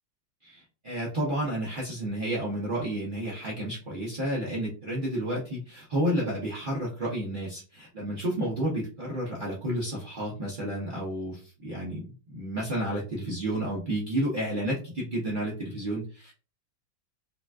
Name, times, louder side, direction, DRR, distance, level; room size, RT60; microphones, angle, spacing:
voice 1, 0.4-16.3, right 1 dB, 80° right, -5 dB, 0.4 m, -31 dB
3.8 x 2.3 x 2.3 m, 0.36 s
omnidirectional pair, 2.1 m